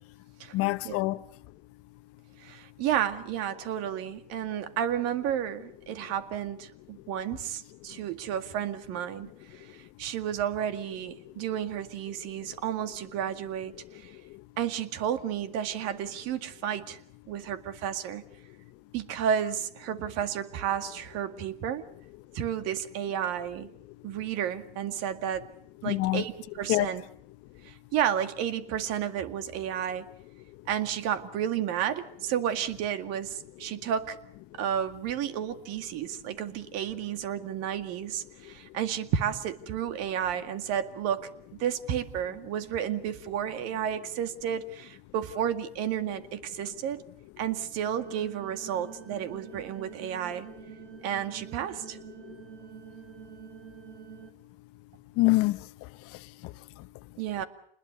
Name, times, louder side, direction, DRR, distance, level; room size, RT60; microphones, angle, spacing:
voice 1, 0.5-1.2 11.4-11.5 12.4-12.6 14.1-14.4 25.8-26.2 26.7-26.9 34.5-34.6 38.4-38.5 52.2-52.4 55.2-56.9, left 20 dB, 50° left, 1.0 m, -28 dB
voice 2, 2.4-9.7 10.0-14.1 14.6-17.0 17.3-18.2 18.9-21.8 22.3-23.7 24.0-25.5 25.8-27.0 27.6-30.1 30.7-34.2 34.6-47.0 47.4-50.5 51.0-52.0 57.2-57.4, right 9 dB, 55° right, 2.1 m, -32 dB
sound 1, 47.8-54.3, right 8 dB, 75° right, 3.4 m, -47 dB
28.0 x 21.0 x 6.7 m
supercardioid pair, 115°, 30 cm